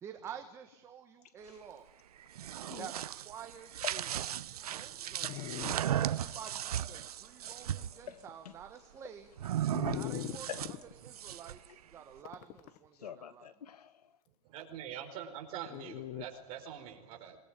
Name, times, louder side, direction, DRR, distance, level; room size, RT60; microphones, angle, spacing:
voice 1, 0.0-1.9 2.8-4.1 4.5-5.5 6.1-9.3 9.8-10.5 11.0-13.5, right 8 dB, 15° right, 1.3 m, -49 dB
sound 1, 2.2-8.0 9.4-11.7, right 11 dB, 75° right, 1.0 m, -36 dB
Dog, 2.3-2.4 2.6-2.9 3.6-3.7 4.4-4.5 5.2-5.8 6.3-6.4 9.7-10.8 12.2-12.8 15.7-16.2, left 14 dB, 30° left, 1.3 m, -40 dB
voice 2, 4.4-5.7 14.5-17.4, right 9 dB, 30° right, 4.6 m, -46 dB
voice 3, 5.1-6.4 6.9-7.7 8.1-8.6 9.9-10.0 10.5-10.8 11.7-11.8 13.0-14.1, left 9 dB, 80° left, 1.9 m, -48 dB
27.0 x 20.5 x 8.9 m
hypercardioid pair, 160°, 20 cm